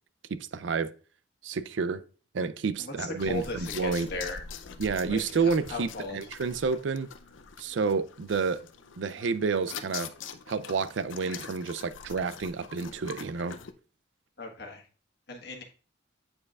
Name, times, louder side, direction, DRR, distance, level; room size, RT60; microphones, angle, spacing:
voice 1, 0.3-0.9 1.4-2.0 2.3-4.1 4.8-7.1 7.6-8.6 9.0-10.1 10.5-13.6, right 5 dB, 75° right, 0.4 m, -29 dB
voice 2, 2.8-4.4 5.1-6.2 14.4-14.8 15.3-15.6, left 2 dB, 60° left, 1.4 m, -37 dB
sound 1, 3.2-13.7, left 7 dB, 85° left, 0.5 m, -44 dB
8.6 x 4.8 x 2.4 m
head